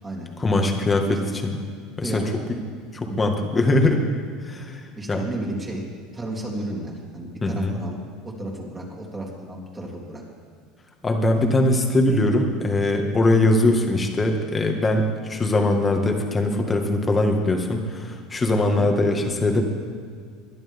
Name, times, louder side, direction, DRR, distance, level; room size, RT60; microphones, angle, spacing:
voice 1, 0.4-1.6 2.0-2.2 2.5-2.6 2.9-4.0 4.4-4.8 5.1-5.2 7.4-7.8 11.0-19.6, left 2 dB, 20° left, 3 dB, 1.9 m, -21 dB
voice 2, 2.0-2.4 3.1-3.3 5.0-5.9 6.1-8.0 8.2-10.2 11.3-11.5 18.7-18.9, right 1 dB, 20° right, -2 dB, 3.4 m, -33 dB
22.5 x 10.5 x 3.7 m, 2.1 s
supercardioid pair, 110°, 0 cm